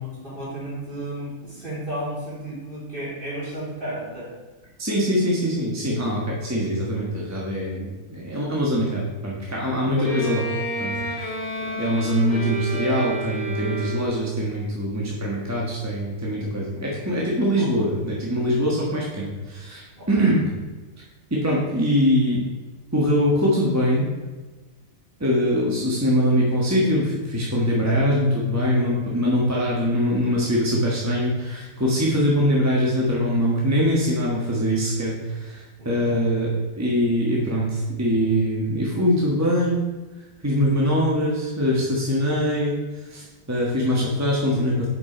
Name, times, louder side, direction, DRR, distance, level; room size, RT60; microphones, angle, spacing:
voice 1, 0.0-4.3 11.6-11.8 17.5-17.7 19.9-20.3 35.8-36.1, right 1 dB, 40° right, -6 dB, 3.2 m, -33 dB
voice 2, 4.8-10.5 10.8-10.9 11.8-19.8 20.1-20.5 21.3-22.4 22.9-24.1 25.2-36.5 36.8-39.8 40.4-42.7 43.1-44.9, equal, 10° right, -5 dB, 1.3 m, -23 dB
Bowed string instrument, 10.0-14.4, right 2 dB, 55° left, 2.3 m, -30 dB
7.9 x 5.4 x 5.0 m, 1.3 s
omnidirectional pair, 1.4 m